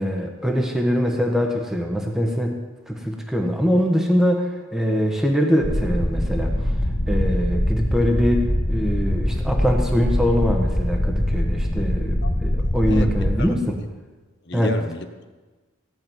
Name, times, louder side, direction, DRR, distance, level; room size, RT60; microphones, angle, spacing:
voice 1, 0.0-2.6 2.9-6.7 7.1-13.8 14.5-14.7, equal, ahead, 1 dB, 1.4 m, -23 dB
sound 1, 5.6-13.4, left 1 dB, 35° left, 1.6 m, -23 dB
voice 2, 14.5-15.3, left 2 dB, 55° left, 7 dB, 1.2 m, -32 dB
16.5 x 6.4 x 9.1 m, 1.3 s
head